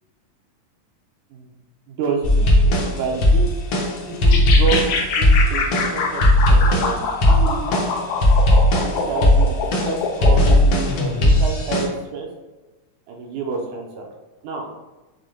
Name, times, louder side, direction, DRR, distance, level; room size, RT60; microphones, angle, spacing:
voice 1, 1.9-3.5 4.1-4.8 5.2-5.6 5.9-6.2 6.5-7.8 8.8-9.6 9.8-12.3 13.1-14.1 14.4-14.7, right 5 dB, 80° right, 0 dB, 2.1 m, -29 dB
sound 1, 2.2-11.9, left 1 dB, 65° left, 1.5 m, -17 dB
sound 2, 4.3-10.6, left 5 dB, 85° left, 2.2 m, -24 dB
6.5 x 2.2 x 3.7 m, 1.2 s
omnidirectional pair, 3.5 m